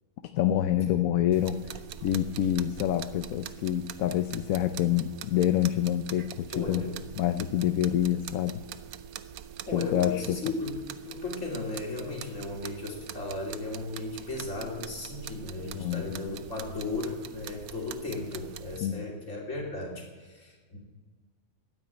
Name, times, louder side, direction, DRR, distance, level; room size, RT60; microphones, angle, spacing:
voice 1, 0.3-1.6 2.0-6.8 7.2-8.6 9.7-10.2 15.7-16.2 18.8-19.0, left 11 dB, 75° left, 9 dB, 1.0 m, -27 dB
sound 1, 1.3-18.8, right 10 dB, 80° right, 1.1 m, -44 dB
voice 2, 6.5-7.0 9.7-20.8, left 2 dB, 55° left, -1 dB, 3.1 m, -36 dB
12.5 x 9.1 x 9.0 m, 1.4 s
omnidirectional pair, 1.5 m